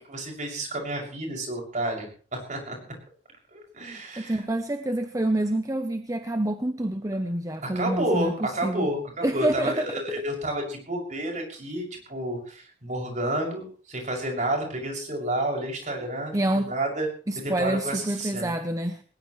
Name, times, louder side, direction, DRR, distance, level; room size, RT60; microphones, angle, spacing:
voice 1, 0.1-2.8 3.5-4.4 7.6-17.1 17.3-18.5, right 1 dB, 40° right, 1 dB, 6.7 m, -30 dB
voice 2, 4.1-8.9 9.2-9.9 16.3-16.7 17.3-19.0, right 1 dB, 20° right, 8 dB, 0.8 m, -27 dB
20.0 x 19.5 x 3.2 m, 0.41 s
head